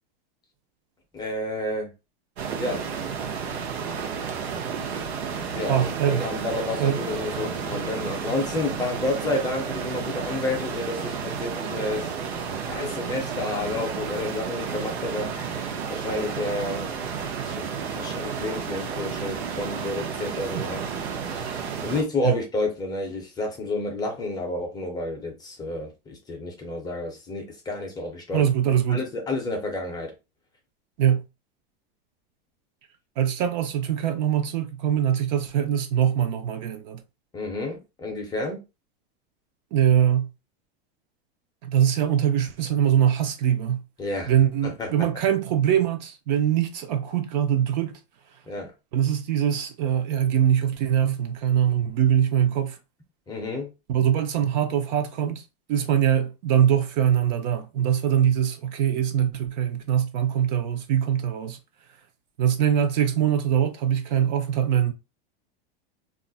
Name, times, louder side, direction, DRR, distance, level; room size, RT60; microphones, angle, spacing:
voice 1, 1.1-1.9 2.6-2.8 5.5-12.1 12.7-17.1 17.4-20.8 21.2-28.4 28.9-30.1 37.3-38.6 44.0-44.3 44.8-44.9 48.5-48.7 53.3-53.7, left 2 dB, 15° left, 0.5 m, -30 dB
sound 1, 2.4-22.0, right 6 dB, 85° right, 0.7 m, -32 dB
voice 2, 5.7-6.3 6.8-7.0 20.5-20.7 22.2-22.4 28.3-29.0 31.0-31.2 33.2-37.0 39.7-40.3 41.6-43.8 44.3-48.0 48.9-52.8 53.9-55.4 55.7-61.6 62.4-64.9, right 9 dB, 45° right, 0.4 m, -23 dB
2.4 x 2.0 x 3.8 m
supercardioid pair, 155°, 31 cm